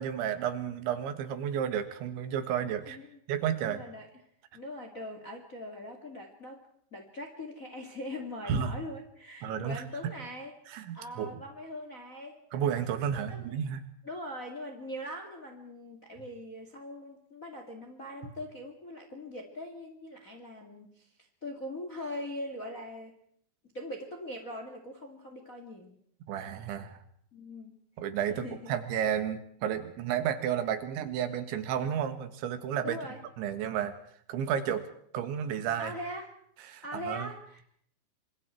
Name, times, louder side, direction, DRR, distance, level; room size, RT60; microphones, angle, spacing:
voice 1, 0.0-3.0 3.3-3.8 8.5-8.7 9.4-9.8 10.7-11.4 12.5-13.8 26.3-27.0 28.0-33.0 33.4-33.9 34.3-34.8 35.1-35.9 36.7-37.3, right 9 dB, 85° right, 10 dB, 4.0 m, -32 dB
voice 2, 2.8-3.2 3.6-4.1 4.5-6.6 6.9-10.5 10.9-12.4 13.1-13.6 14.0-21.1 21.4-23.1 23.7-25.9 27.3-27.7 28.3-28.7 32.8-33.2 35.8-36.3 36.8-37.6, left 1 dB, 30° left, 4 dB, 1.7 m, -41 dB
26.0 x 25.5 x 4.5 m, 0.63 s
omnidirectional pair, 5.2 m